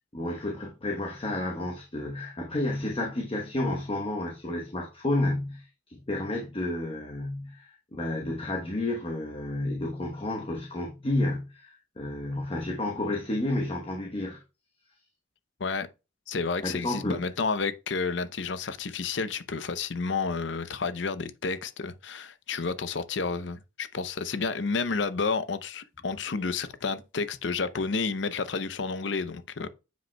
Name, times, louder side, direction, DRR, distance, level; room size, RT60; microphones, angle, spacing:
voice 1, 0.1-14.4 16.6-17.2, left 1 dB, 30° left, 1.0 m, -31 dB
voice 2, 16.3-29.7, left 4 dB, 70° left, 0.6 m, -30 dB
9.0 x 5.1 x 2.2 m
head